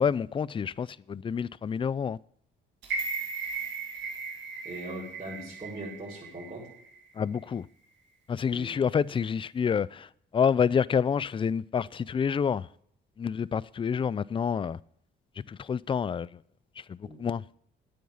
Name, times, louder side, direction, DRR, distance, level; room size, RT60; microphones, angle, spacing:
voice 1, 0.0-2.2 7.2-7.7 8.3-12.7 13.2-14.8 15.5-16.4 16.8-17.4, left 7 dB, 25° left, 0.4 m, -28 dB
sound 1, 2.8-7.0 7.3-7.4, right 4 dB, 70° right, 2.3 m, -36 dB
voice 2, 4.6-6.7 8.5-8.7 17.0-17.2, right 1 dB, 30° right, 4.9 m, -40 dB
9.4 x 8.6 x 6.9 m
cardioid pair, 90°, 20 cm